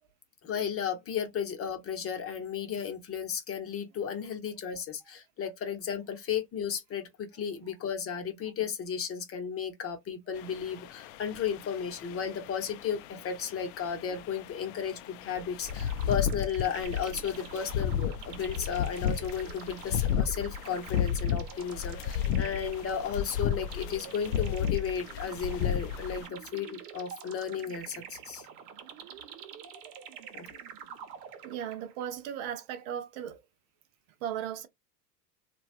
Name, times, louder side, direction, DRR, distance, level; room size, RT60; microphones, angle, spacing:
voice 1, 0.4-28.5 30.3-30.5, left 7 dB, 30° left, 0.9 m, -34 dB
sound 1, 10.3-26.3, left 9 dB, 50° left, 0.5 m, -33 dB
sound 2, 15.6-32.0, right 8 dB, 70° right, 1.0 m, -47 dB
voice 2, 31.4-33.4 34.2-34.7, right 9 dB, 50° right, 0.7 m, -36 dB
3.1 x 2.4 x 2.4 m
hypercardioid pair, 105°, 49 cm